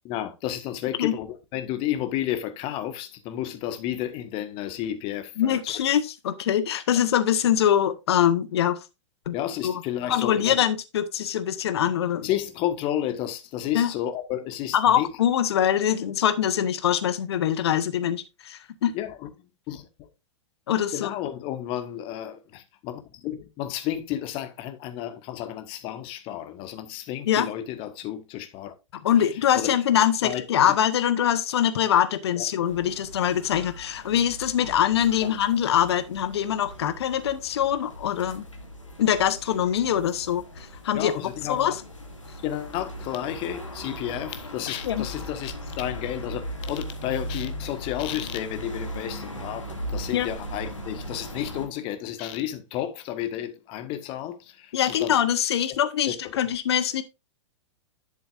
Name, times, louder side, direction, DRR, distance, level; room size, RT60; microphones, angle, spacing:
voice 1, 0.0-1.3 1.5-5.7 9.3-10.6 12.2-15.1 18.9-19.3 19.7-20.1 20.9-28.7 29.5-29.7 30.2-30.4 30.7-30.8 32.4-32.5 40.9-41.8 42.4-55.1 56.2-56.3, left 12 dB, 35° left, 1.7 m, -32 dB
voice 2, 5.4-8.8 9.3-9.4 9.6-9.8 10.1-12.3 13.7-13.9 14.7-18.9 20.7-21.1 27.3-27.5 29.0-38.4 39.0-41.1 41.5-41.8 44.8-45.1 50.1-50.3 54.7-57.0, left 10 dB, 60° left, 1.2 m, -23 dB
sound 1, 32.6-51.7, equal, 85° left, 2.4 m, -38 dB
11.5 x 6.8 x 2.6 m
figure-of-eight pair, 105°, 16 cm